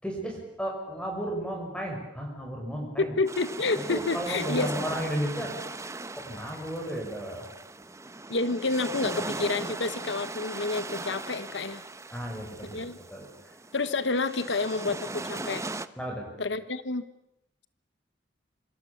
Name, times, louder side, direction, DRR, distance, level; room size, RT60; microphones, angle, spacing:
voice 1, 0.0-3.1 3.8-5.5 6.1-7.5 12.1-12.8 13.1-13.3 16.0-16.3, equal, 5° left, 1 dB, 6.1 m, -33 dB
voice 2, 3.0-4.7 8.3-11.8 12.7-13.0 13.7-15.6 16.4-17.0, left 3 dB, 80° left, 12 dB, 1.2 m, -29 dB
sound 1, 3.3-15.9, right 2 dB, 15° right, 0.9 m, -38 dB
27.0 x 25.5 x 7.2 m, 0.83 s
head